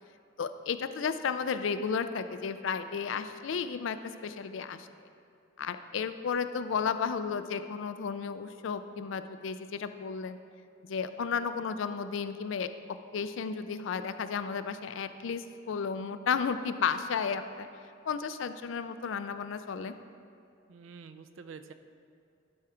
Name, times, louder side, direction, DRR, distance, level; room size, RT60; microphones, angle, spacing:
voice 1, 0.4-4.9 5.6-10.4 10.9-17.7 18.0-19.9, left 6 dB, 75° left, 10 dB, 0.4 m, -33 dB
voice 2, 20.7-21.7, right 5 dB, 90° right, 9 dB, 0.5 m, -47 dB
12.0 x 4.4 x 4.9 m, 2.5 s
head